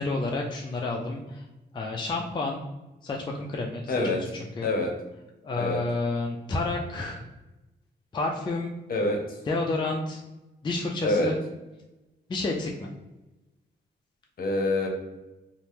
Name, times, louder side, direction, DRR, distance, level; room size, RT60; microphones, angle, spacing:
voice 1, 0.0-1.5 1.7-2.6 3.0-4.7 5.4-7.2 8.1-8.7 9.5-10.2 10.6-11.4 12.3-12.9, left 2 dB, 25° left, 0 dB, 0.4 m, -30 dB
voice 2, 3.9-4.2 4.6-4.9 5.6-5.8 8.9-9.4 11.0-11.3 14.4-14.9, left 2 dB, 55° left, 2 dB, 0.7 m, -26 dB
2.8 x 2.1 x 3.3 m, 1.0 s
cardioid pair, 85°, 18 cm